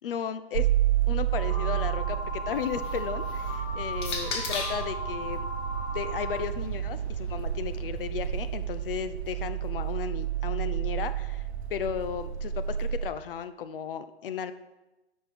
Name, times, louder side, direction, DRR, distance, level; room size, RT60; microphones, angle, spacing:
voice 1, 0.0-0.7 1.1-5.5 5.9-14.5, left 8 dB, 55° left, 12 dB, 0.7 m, -35 dB
sound 1, 0.5-13.1, right 11 dB, 85° right, 0.8 m, -31 dB
sound 2, 1.3-6.4, equal, 20° right, 2.7 m, -37 dB
sound 3, 2.5-4.9 5.9-8.0, left 4 dB, 20° left, 0.9 m, -39 dB
7.8 x 5.5 x 6.1 m, 1.0 s
hypercardioid pair, 145°, 32 cm